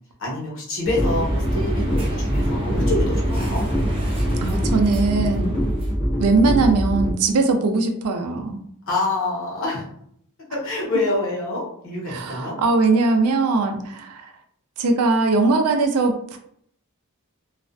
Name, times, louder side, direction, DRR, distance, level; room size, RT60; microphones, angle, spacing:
voice 1, 0.2-3.6 8.9-9.8 10.5-12.6, left 2 dB, 65° left, -4 dB, 0.9 m, -26 dB
sound 1, 0.8-7.2, equal, 35° left, 0.7 m, -24 dB
sound 2, 0.9-5.9, right 1 dB, 25° right, 0.5 m, -29 dB
voice 2, 4.4-5.6 6.2-8.6 12.1-14.3 14.8-16.4, right 3 dB, 80° right, 5 dB, 0.4 m, -20 dB
2.4 x 2.1 x 2.5 m, 0.67 s
head